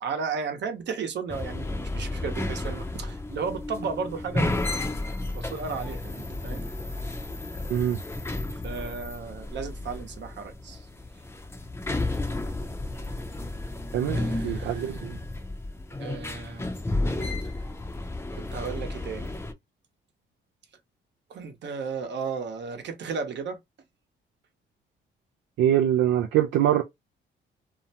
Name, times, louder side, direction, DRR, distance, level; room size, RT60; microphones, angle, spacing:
voice 1, 0.0-4.9 5.3-6.7 8.6-10.9 14.1-14.9 16.0-16.7 18.3-19.4 21.3-23.6, right 5 dB, 65° right, 0.9 m, -34 dB
sound 1, 1.3-19.5, left 2 dB, 10° left, 0.6 m, -32 dB
voice 2, 7.7-8.0 13.9-15.2 25.6-26.8, right 11 dB, 80° right, 0.4 m, -24 dB
2.7 x 2.1 x 2.7 m
cardioid pair, 90°, 20 cm